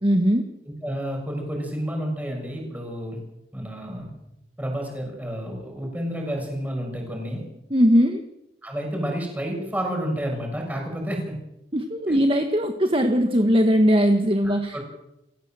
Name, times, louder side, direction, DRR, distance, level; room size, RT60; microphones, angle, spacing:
voice 1, 0.0-0.5 7.7-8.2 11.7-14.8, equal, 30° right, 6 dB, 1.5 m, -20 dB
voice 2, 0.7-3.2 3.5-4.1 4.6-7.4 8.6-11.4 12.1-12.2 14.4-14.8, equal, 10° right, 0 dB, 7.0 m, -30 dB
28.5 x 16.5 x 7.6 m, 0.89 s
head